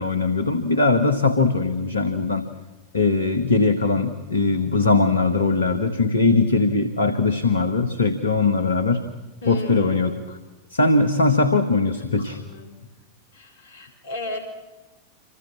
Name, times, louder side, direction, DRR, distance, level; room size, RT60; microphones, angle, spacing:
voice 1, 0.0-2.4 2.9-9.0 9.4-10.4 10.7-12.4, left 3 dB, 75° left, 10 dB, 1.7 m, -20 dB
voice 2, 9.4-10.2 12.4-12.8 13.3-14.4, left 2 dB, 60° left, 7 dB, 4.4 m, -35 dB
27.5 x 26.0 x 7.5 m, 1.1 s
figure-of-eight pair, 90°, 0 cm